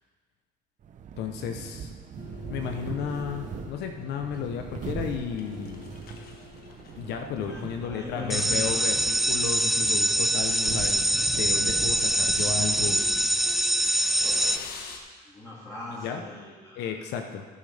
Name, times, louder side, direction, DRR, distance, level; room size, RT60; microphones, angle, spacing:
sound 1, 0.8-13.5, right 6 dB, 50° right, 0.8 m, -40 dB
voice 1, 1.2-1.9 2.5-5.9 6.9-13.0 16.0-16.2 16.8-17.5, left 7 dB, 80° left, 5 dB, 0.9 m, -33 dB
sound 2, 2.2-15.0, left 5 dB, 65° left, 1.3 m, -46 dB
voice 2, 7.3-8.8 15.2-16.9, left 2 dB, 20° left, -6 dB, 2.2 m, -40 dB
sound 3, 8.3-14.6, right 1 dB, ahead, 0.3 m, -24 dB
18.0 x 6.6 x 3.4 m, 1.5 s
cardioid pair, 110°, 17 cm